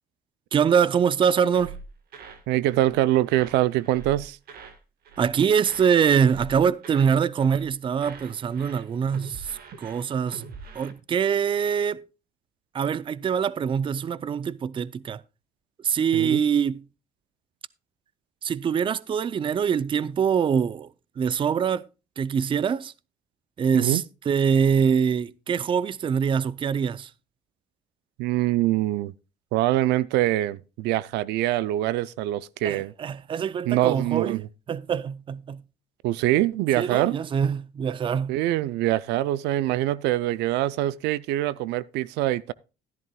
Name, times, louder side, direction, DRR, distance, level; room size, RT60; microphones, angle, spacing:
voice 1, 0.5-1.7 5.2-9.5 9.8-10.4 10.8-12.1 12.7-15.2 15.8-16.8 18.4-20.9 21.2-21.8 22.2-22.9 23.6-27.1 32.6-34.4 34.7-35.6 36.8-38.3, right 7 dB, 30° right, 0.4 m, -24 dB
sound 1, 1.5-2.4 2.7-3.0 3.3-4.8 5.0-5.3 5.6-7.2 7.4-7.7 8.0-10.9, right 5 dB, 65° right, 1.5 m, -44 dB
voice 2, 2.5-4.4 16.1-16.4 23.7-24.0 28.2-29.1 29.5-32.9 33.7-34.5 36.0-37.2 38.3-42.5, right 15 dB, 90° right, 0.4 m, -24 dB
13.5 x 11.0 x 2.2 m
cardioid pair, 110°, 17 cm